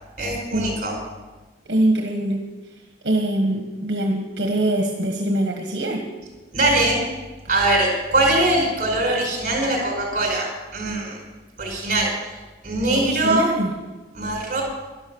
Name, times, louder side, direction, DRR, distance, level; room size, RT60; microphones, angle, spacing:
voice 1, 0.2-0.9 6.5-7.0 7.5-11.2 11.6-12.1 12.6-13.5 14.1-14.6, right 2 dB, 45° right, 0 dB, 5.1 m, -21 dB
voice 2, 1.7-2.4 3.0-6.0 12.9-13.7, right 1 dB, 70° right, 1 dB, 1.5 m, -23 dB
12.0 x 11.5 x 7.0 m, 1.2 s
head